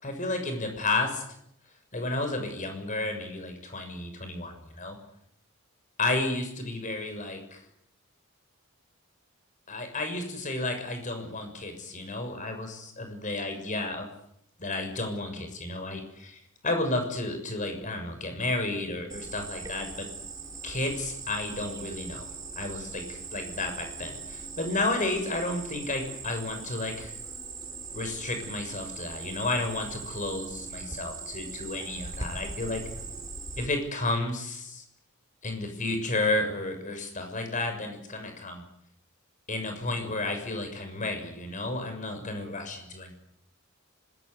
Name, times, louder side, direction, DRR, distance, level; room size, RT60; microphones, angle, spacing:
voice 1, 0.0-1.2 1.9-5.0 6.0-7.6 9.7-14.1 14.6-20.1 20.6-22.3 22.5-27.2 27.9-32.8 33.6-34.8 35.4-38.6 39.5-43.1, left 2 dB, 35° left, 6 dB, 6.7 m, -32 dB
Cricket, 19.1-33.7, right 4 dB, 15° right, 4.9 m, -40 dB
26.5 x 21.0 x 9.6 m, 0.75 s
head